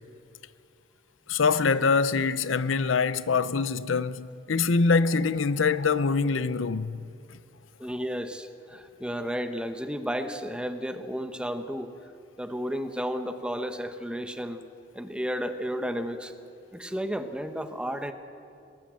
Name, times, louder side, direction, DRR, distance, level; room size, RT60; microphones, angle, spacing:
voice 1, 1.3-7.0, left 4 dB, 85° left, 0.7 m, -24 dB
voice 2, 7.8-11.9 12.4-14.6 14.9-16.3 16.7-18.1, equal, 5° right, 1.1 m, -32 dB
22.5 x 19.0 x 7.6 m
head